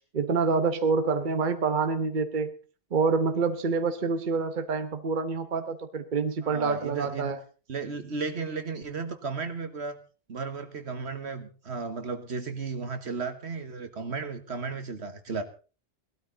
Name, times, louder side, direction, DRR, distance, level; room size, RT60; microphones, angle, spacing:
voice 1, 0.1-2.5 2.9-7.4, right 4 dB, 50° right, 9 dB, 1.1 m, -27 dB
voice 2, 6.4-7.3 7.7-10.0 10.3-15.4, right 4 dB, 75° right, 8 dB, 1.8 m, -34 dB
18.5 x 13.0 x 4.0 m, 0.35 s
omnidirectional pair, 1.1 m